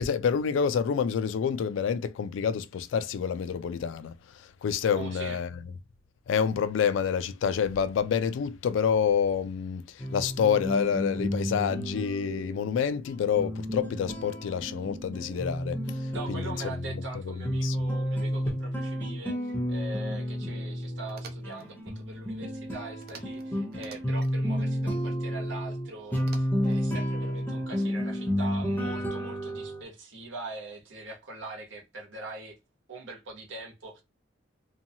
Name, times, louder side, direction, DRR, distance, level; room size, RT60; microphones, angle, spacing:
voice 1, 0.0-5.6 6.3-16.7 17.3-17.8, left 7 dB, 75° left, 0.3 m, -28 dB
voice 2, 4.9-5.4 16.1-32.6 32.9-34.0, right 2 dB, 80° right, 1.0 m, -42 dB
sound 1, 10.0-29.8, equal, 10° left, 0.6 m, -31 dB
sound 2, 21.1-21.7 23.0-23.5 23.7-24.3 26.2-26.8, right 5 dB, 55° right, 0.5 m, -48 dB
2.7 x 2.3 x 2.7 m
head